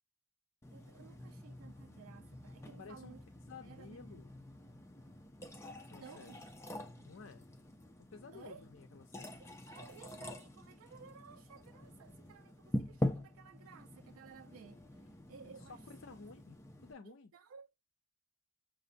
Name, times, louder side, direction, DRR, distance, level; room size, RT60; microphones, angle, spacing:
sound 1, 0.6-16.9, left 1 dB, 15° left, 0.4 m, -45 dB
voice 1, 0.7-3.2 3.6-4.0 6.0-6.4 8.3-8.6 9.4-15.8 17.3-17.7, right 6 dB, 85° right, 0.3 m, -56 dB
voice 2, 2.8-3.2 3.5-4.3 5.9-6.4 7.0-7.5 8.0-9.4 15.5-17.3, left 4 dB, 70° left, 0.5 m, -53 dB
6.1 x 2.1 x 2.5 m
head